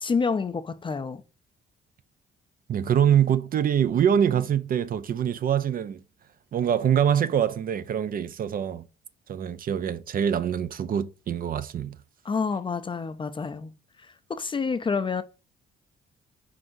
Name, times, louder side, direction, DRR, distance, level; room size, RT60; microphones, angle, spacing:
voice 1, 0.0-1.2 12.2-13.7 14.3-15.2, left 5 dB, 25° left, 0.4 m, -28 dB
voice 2, 2.7-6.0 6.5-8.8 9.3-12.0, right 9 dB, 45° right, 0.4 m, -24 dB
4.6 x 3.8 x 2.6 m
cardioid pair, 90°, 20 cm